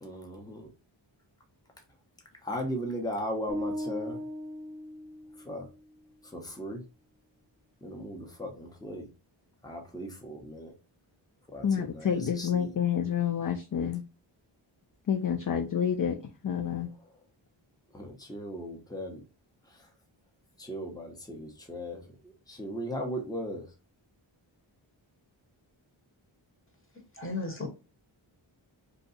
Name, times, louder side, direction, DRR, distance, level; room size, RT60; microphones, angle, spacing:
voice 1, 0.0-0.7 2.4-4.2 5.4-5.7 6.2-6.8 7.8-9.1 9.6-10.7 11.5-12.7 17.9-19.2 19.7-19.9 20.6-23.6, equal, 10° left, 0.9 m, -37 dB
sound 1, 3.5-5.7, equal, 20° right, 0.9 m, -37 dB
voice 2, 11.6-14.0 15.1-16.1 16.4-16.9, left 8 dB, 45° left, 0.5 m, -28 dB
voice 3, 27.1-27.7, left 3 dB, 25° left, 1.2 m, -34 dB
2.7 x 2.3 x 4.0 m
wide cardioid pair, 60°, 47 cm